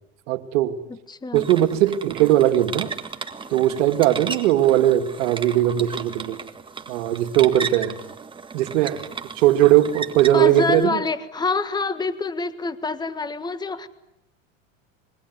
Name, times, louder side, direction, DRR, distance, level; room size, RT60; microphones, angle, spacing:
voice 1, 0.3-0.8 1.3-2.9 3.5-6.4 6.9-8.0 8.5-9.0 9.3-11.0, right 13 dB, 70° right, 8 dB, 2.4 m, -19 dB
voice 2, 0.9-1.5 10.3-13.9, left 3 dB, 10° left, 13 dB, 1.5 m, -26 dB
sound 1, 1.3-10.8, right 5 dB, 15° right, 1.7 m, -35 dB
26.5 x 22.0 x 9.7 m, 0.86 s
supercardioid pair, 125°, 39 cm